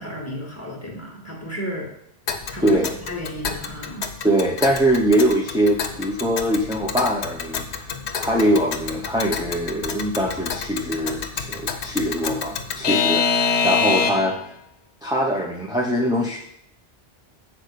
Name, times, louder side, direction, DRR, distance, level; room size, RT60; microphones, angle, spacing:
voice 1, 0.0-1.9 2.5-4.1, equal, 15° left, -3 dB, 2.1 m, -33 dB
Alarm / Clock, 2.3-14.4, left 5 dB, 80° left, 1.1 m, -27 dB
voice 2, 2.6-2.9 4.2-7.7 8.2-14.4 15.0-16.4, equal, 5° right, -1 dB, 0.7 m, -22 dB
8.3 x 4.4 x 6.7 m, 0.72 s
omnidirectional pair, 1.1 m